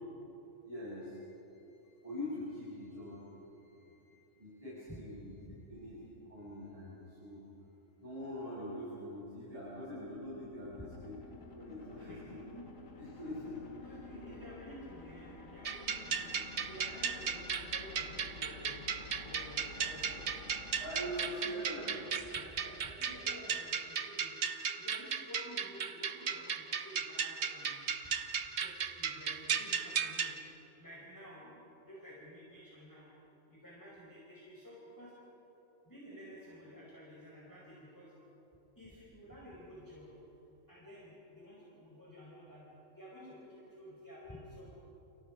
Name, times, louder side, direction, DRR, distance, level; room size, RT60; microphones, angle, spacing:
voice 1, 0.6-3.2 3.5-5.3 5.7-7.4 8.0-11.2 11.5-12.4 13.0-14.4 20.8-22.0, equal, 25° right, -10 dB, 8.1 m, -44 dB
sound 1, 9.7-22.2, left 4 dB, 70° left, 2.1 m, -52 dB
voice 2, 12.0-12.7 13.8-20.3 21.0-27.8 28.0-28.1 28.6-30.4 30.8-31.6 31.9-33.1 33.5-35.1 35.9-38.1 38.8-40.1 40.7-42.6 42.9-44.8, equal, 15° left, -6 dB, 4.8 m, -52 dB
sound 2, 15.6-30.3, right 6 dB, 55° right, 1.2 m, -36 dB
30.0 x 29.5 x 5.1 m, 3.0 s
omnidirectional pair, 1.4 m